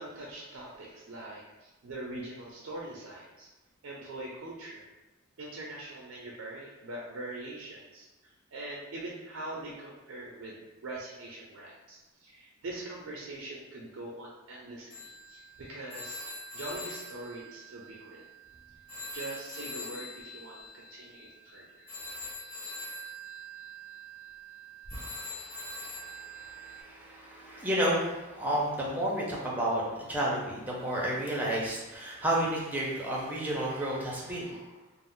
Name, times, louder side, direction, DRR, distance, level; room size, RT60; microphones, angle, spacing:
voice 1, 0.0-3.5 3.8-4.8 5.4-18.3 18.7-18.8 19.1-21.9, right 2 dB, 80° right, -3 dB, 0.5 m, -43 dB
Telephone, 14.9-18.5 18.9-26.8, left 1 dB, 30° left, 1.0 m, -43 dB
voice 2, 24.9-34.6, right 1 dB, 10° right, -5 dB, 0.5 m, -32 dB
2.4 x 2.0 x 3.5 m, 1.1 s
head